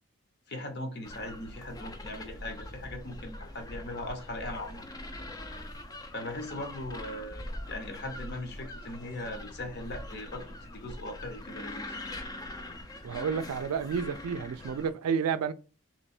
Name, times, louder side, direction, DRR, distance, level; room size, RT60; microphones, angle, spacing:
voice 1, 0.5-4.9 6.1-11.9, left 1 dB, 45° left, 0.8 m, -39 dB
sound 1, 1.0-14.9, left 1 dB, 15° left, 0.3 m, -43 dB
voice 2, 13.0-15.5, right 6 dB, 85° right, 0.4 m, -30 dB
3.2 x 3.0 x 4.2 m
head